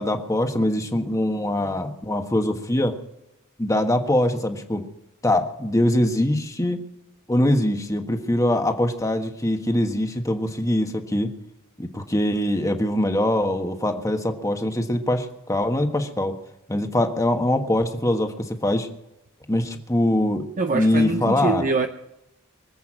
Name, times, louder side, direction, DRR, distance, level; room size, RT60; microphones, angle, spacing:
voice 1, 0.0-3.0 3.6-4.8 5.2-6.8 7.3-11.3 11.8-16.4 16.7-18.9 19.5-21.6, left 1 dB, 15° left, 5 dB, 1.5 m, -23 dB
voice 2, 20.6-21.9, right 3 dB, 40° right, 6 dB, 0.8 m, -24 dB
24.5 x 8.3 x 6.2 m, 0.89 s
head